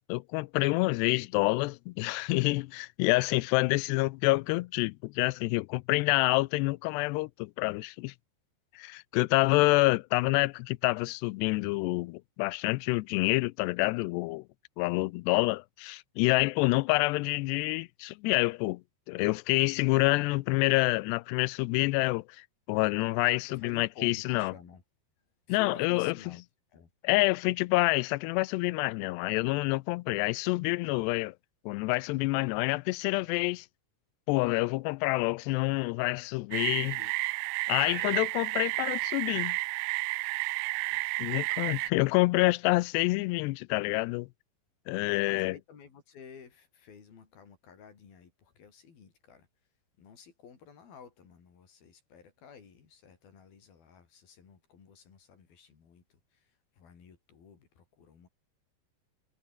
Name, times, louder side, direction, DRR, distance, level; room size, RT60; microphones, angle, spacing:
voice 1, 0.0-8.1 8.8-14.4 14.8-18.8 19.1-24.5 25.5-26.1 27.0-31.3 31.7-33.7 34.3-36.9 37.7-39.6 41.2-44.3 44.9-45.5, left 23 dB, 85° left, 2.6 m, -27 dB
voice 2, 23.5-24.8 25.2-26.4 26.7-26.9 36.8-37.1 37.4-38.3 40.9-41.6 45.1-49.5 50.0-58.3, left 6 dB, 60° left, 5.9 m, -52 dB
sound 1, 36.5-41.9, right 25 dB, 90° right, 2.8 m, -31 dB
omnidirectional pair, 5.0 m